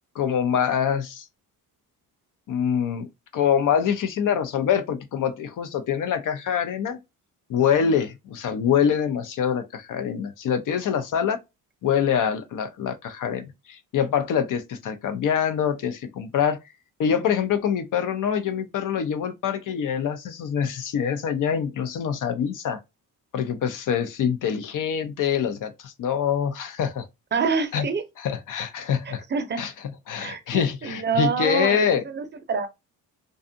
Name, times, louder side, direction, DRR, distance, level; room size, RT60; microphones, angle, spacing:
voice 1, 0.2-1.2 2.5-3.1 3.3-7.0 7.5-11.4 11.8-16.6 17.0-22.8 23.3-27.1 27.7-27.8 28.2-29.2 29.6-29.7 30.1-32.0, left 8 dB, 55° left, 0.6 m, -25 dB
voice 2, 27.3-28.0 29.1-29.7 30.2-32.7, right 5 dB, 30° right, 0.6 m, -27 dB
2.5 x 2.3 x 2.5 m
cardioid pair, 105°, 37 cm